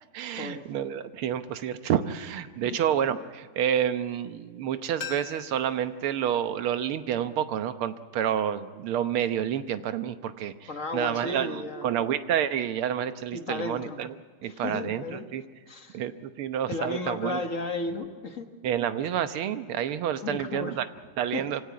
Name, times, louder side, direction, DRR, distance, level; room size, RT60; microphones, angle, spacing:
voice 1, 0.1-14.2 14.4-15.4 15.9-17.4 18.6-20.9 21.2-21.6, right 9 dB, 80° right, 10 dB, 1.9 m, -29 dB
sound 1, 5.0-7.8 8.1-8.2, left 6 dB, 60° left, 2.0 m, -44 dB
voice 2, 10.7-11.9 13.3-14.0 14.4-15.3 15.7-16.0 16.7-18.5 20.2-20.8 21.3-21.4, left 3 dB, 40° left, 6 dB, 1.6 m, -34 dB
24.5 x 17.5 x 9.3 m, 1.5 s
omnidirectional pair, 2.4 m